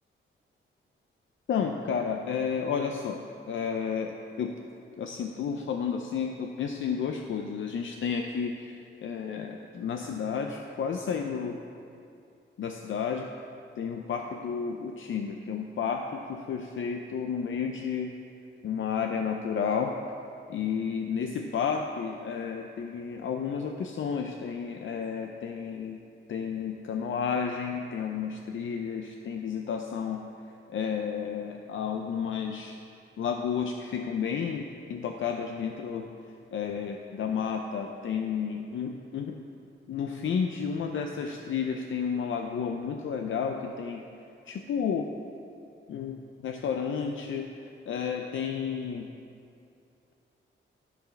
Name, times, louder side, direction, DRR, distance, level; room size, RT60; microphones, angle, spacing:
voice 1, 1.5-3.2 3.5-4.1 4.4-4.5 5.0-11.6 12.6-13.3 13.8-18.1 18.6-19.9 20.5-26.0 26.3-30.2 30.7-32.8 33.2-36.1 36.5-39.4 39.9-44.0 44.4-45.1 45.9-49.1, left 6 dB, 70° left, 3 dB, 0.5 m, -31 dB
13.5 x 4.8 x 5.8 m, 2.5 s
wide cardioid pair, 140°, 21 cm